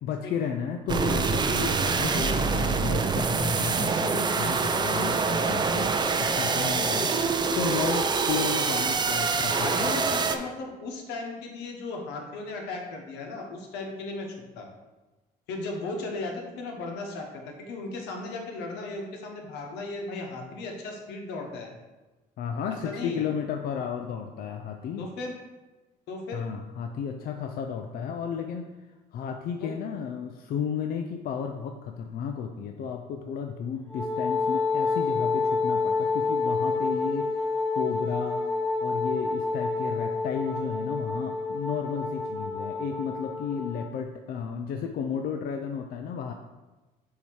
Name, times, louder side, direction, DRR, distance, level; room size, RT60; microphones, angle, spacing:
voice 1, 0.0-9.9 22.4-25.1 26.3-28.7 29.1-38.5 38.8-46.3, left 7 dB, 60° left, 4 dB, 0.5 m, -33 dB
sound 1, 0.9-10.4, right 4 dB, 25° right, 0.4 m, -25 dB
voice 2, 6.6-7.2 9.5-14.7 15.5-21.7 22.8-23.2 25.0-25.3 26.1-26.4 29.6-29.7, left 3 dB, 90° left, 2 dB, 1.1 m, -36 dB
Wind instrument woodwind instrument, 33.9-43.9, left 3 dB, 5° left, 0.8 m, -28 dB
7.2 x 2.8 x 4.6 m, 1.2 s
cardioid pair, 110°, 17 cm